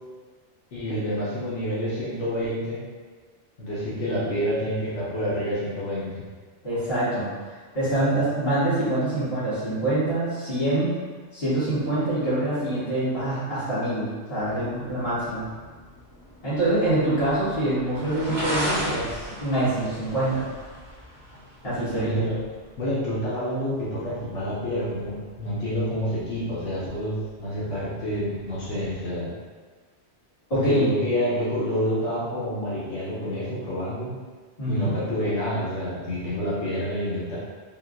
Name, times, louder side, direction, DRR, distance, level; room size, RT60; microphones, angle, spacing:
voice 1, 0.7-2.8 3.6-6.2 21.9-22.4 22.8-29.3 30.5-34.1 34.7-37.4, equal, 75° left, -8 dB, 1.1 m, -28 dB
voice 2, 6.6-7.3 7.7-10.9 11.3-15.4 16.4-20.4 21.6-22.2 30.5-30.9 34.6-34.9, right 1 dB, 55° left, -14 dB, 1.9 m, -25 dB
sound 1, 14.4-29.0, equal, 35° right, 1.1 m, -38 dB
3.7 x 2.3 x 2.5 m, 1.5 s
omnidirectional pair, 1.2 m